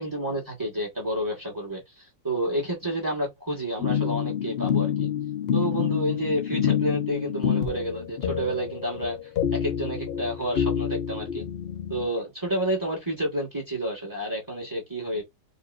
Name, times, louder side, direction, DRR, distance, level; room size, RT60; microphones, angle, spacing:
voice 1, 0.0-5.1 5.5-9.2 9.5-11.4 11.9-15.2, right 1 dB, 10° right, 1.6 m, -30 dB
sound 1, 3.8-12.1, left 9 dB, 80° left, 0.5 m, -27 dB
4.4 x 2.7 x 2.6 m
omnidirectional pair, 1.9 m